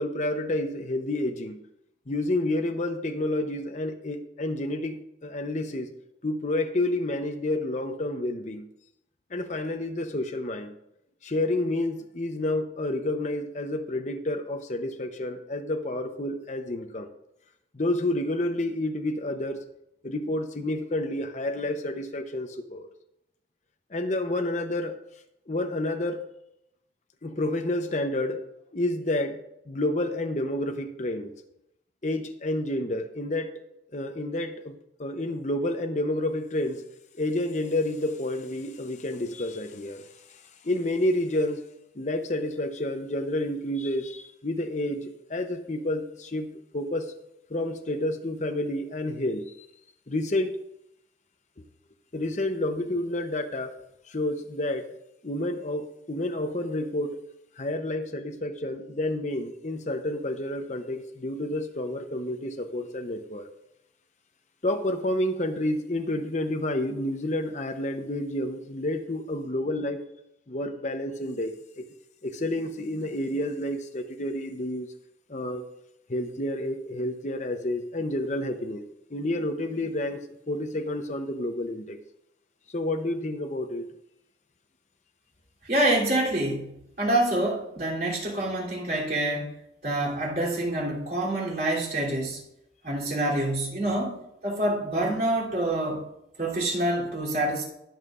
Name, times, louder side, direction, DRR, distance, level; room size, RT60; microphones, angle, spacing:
voice 1, 0.0-1.6 2.1-5.9 6.2-8.7 9.3-10.8 11.2-17.1 17.7-19.6 20.0-22.9 23.9-25.0 25.5-26.2 27.2-28.4 28.7-29.4 29.7-31.3 32.0-33.5 33.9-36.8 37.2-41.6 42.0-47.1 47.5-49.7 50.1-50.5 52.1-53.8 54.1-54.9 55.2-57.2 57.6-63.5 64.6-70.0 70.5-71.8 72.2-74.9 75.3-75.6 76.1-80.2 80.5-82.0 82.7-83.9, left 1 dB, 40° left, 6 dB, 0.8 m, -29 dB
voice 2, 85.6-89.5 89.8-92.4 92.8-96.0 96.4-97.6, right 1 dB, 50° right, -4 dB, 3.1 m, -27 dB
20.5 x 7.3 x 2.5 m, 0.81 s
head